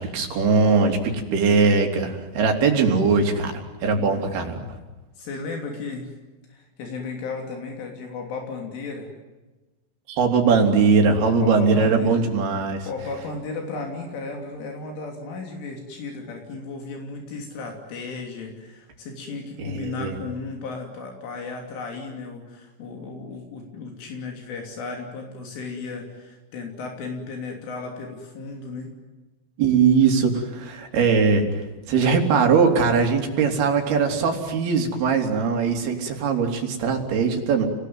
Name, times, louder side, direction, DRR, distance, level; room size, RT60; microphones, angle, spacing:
voice 1, 0.0-4.8 10.1-12.9 19.6-20.2 29.6-37.7, right 5 dB, 55° right, 3 dB, 4.9 m, -21 dB
voice 2, 3.9-4.5 5.2-6.2 6.5-9.1 11.4-12.2 12.9-29.0, left 3 dB, 75° left, 2 dB, 5.6 m, -35 dB
30.0 x 20.0 x 9.5 m, 1.2 s
omnidirectional pair, 5.6 m